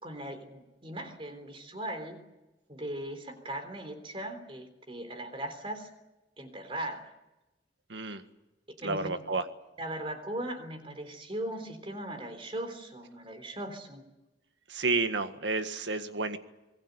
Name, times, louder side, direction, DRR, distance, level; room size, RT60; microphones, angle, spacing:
voice 1, 0.0-2.2 2.7-5.9 6.4-7.1 8.8-9.1 9.8-14.0, right 1 dB, 30° right, 8 dB, 3.6 m, -39 dB
voice 2, 7.9-8.2 8.8-9.5 14.7-16.4, right 3 dB, 85° right, 9 dB, 1.8 m, -30 dB
26.0 x 19.5 x 8.3 m, 1.0 s
head